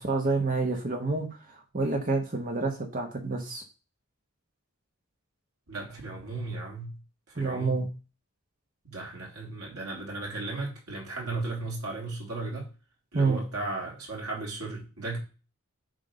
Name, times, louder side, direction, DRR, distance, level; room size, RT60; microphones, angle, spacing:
voice 1, 0.0-3.6 7.3-7.9 13.1-13.4, right 3 dB, 40° right, 1.2 m, -28 dB
voice 2, 5.7-7.0 7.3-7.8 8.8-12.7 13.1-15.2, right 2 dB, 85° right, 3.3 m, -35 dB
9.2 x 3.7 x 5.1 m
head